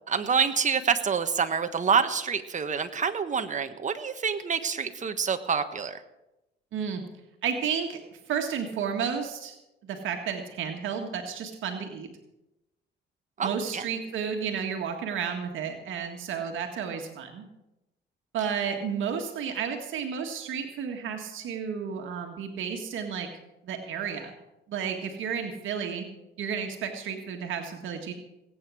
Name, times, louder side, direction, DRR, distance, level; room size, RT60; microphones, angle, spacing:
voice 1, 0.1-6.0 13.4-13.9, right 6 dB, 40° right, 8 dB, 1.4 m, -27 dB
voice 2, 6.7-7.0 7.4-8.0 8.3-9.6 9.8-12.1 13.4-17.4 18.3-23.3 23.7-24.3 24.7-26.1 26.4-28.1, right 7 dB, 80° right, 3 dB, 1.7 m, -32 dB
18.5 x 8.9 x 6.3 m, 0.95 s
cardioid pair, 90°, 20 cm